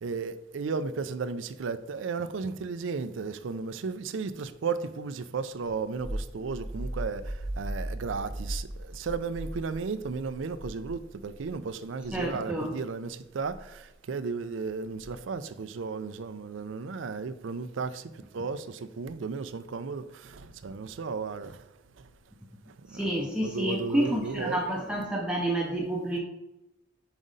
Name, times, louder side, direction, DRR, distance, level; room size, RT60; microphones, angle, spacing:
voice 1, 0.0-18.0 18.3-21.6 22.9-23.1 23.4-24.6, right 4 dB, 75° right, 0.4 m, -34 dB
sound 1, 5.6-11.5 11.9-12.3 13.4-13.7 14.9-15.3, right 1 dB, 55° left, 1.6 m, -38 dB
voice 2, 12.1-12.7 22.9-26.2, right 1 dB, 5° right, 0.6 m, -29 dB
5.3 x 5.0 x 3.9 m
head